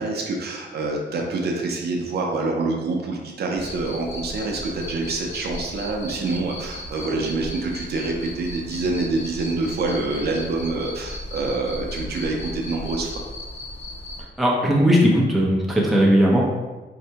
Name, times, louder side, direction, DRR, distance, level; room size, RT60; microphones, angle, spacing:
voice 1, 0.0-13.1, right 3 dB, 60° right, 0 dB, 0.5 m, -26 dB
Cricket, 3.6-14.2, left 1 dB, 85° left, 1.3 m, -36 dB
voice 2, 14.4-16.4, equal, ahead, -4 dB, 0.6 m, -18 dB
4.6 x 2.1 x 2.7 m, 1.2 s
wide cardioid pair, 135°, 19 cm